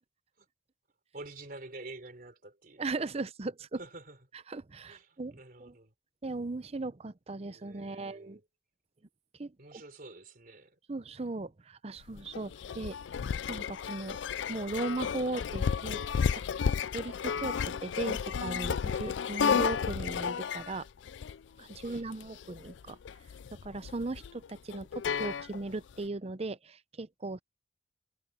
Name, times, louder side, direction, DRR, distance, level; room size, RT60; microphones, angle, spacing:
voice 1, 1.1-2.8 3.8-4.2 4.9-5.9 7.4-8.4 9.6-10.8 21.8-22.1, right 2 dB, 50° right, 3.7 m, -48 dB
voice 2, 2.8-3.8 4.5-5.8 6.2-8.4 9.4-9.5 10.9-13.0 13.5-14.2 14.5-16.0 16.3-16.4 16.8-20.9 21.6-23.0 23.5-27.4, right 2 dB, 35° right, 0.6 m, -37 dB
sound 1, 12.0-25.9, left 6 dB, 80° left, 0.4 m, -33 dB
head